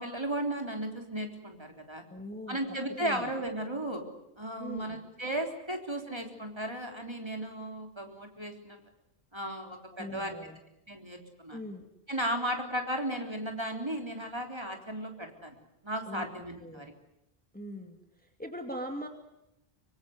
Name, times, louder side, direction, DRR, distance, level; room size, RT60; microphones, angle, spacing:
voice 1, 0.0-2.0 2.5-4.0 4.4-8.8 9.3-10.4 10.9-11.6 12.1-15.6 15.8-16.9, right 1 dB, 25° right, 3 dB, 3.7 m, -35 dB
voice 2, 2.1-3.3 4.6-5.0 9.9-10.6 11.5-11.9 16.1-16.9 17.5-18.0 18.4-19.1, equal, 10° left, 4 dB, 2.3 m, -41 dB
24.5 x 24.5 x 8.0 m, 0.87 s
omnidirectional pair, 1.1 m